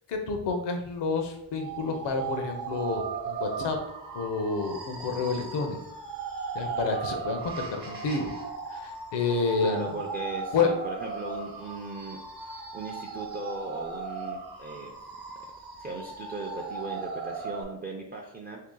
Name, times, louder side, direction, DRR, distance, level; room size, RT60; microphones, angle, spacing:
voice 1, 0.1-3.8 4.1-5.8 6.5-8.3 8.7-9.9 10.5-10.7, left 4 dB, 70° left, 4 dB, 0.6 m, -29 dB
sound 1, 1.5-17.6, right 4 dB, 50° right, 1.0 m, -37 dB
voice 2, 9.6-14.9 15.8-18.6, right 2 dB, 20° right, -2 dB, 0.4 m, -38 dB
2.8 x 2.7 x 3.7 m, 0.84 s
cardioid pair, 75°, 44 cm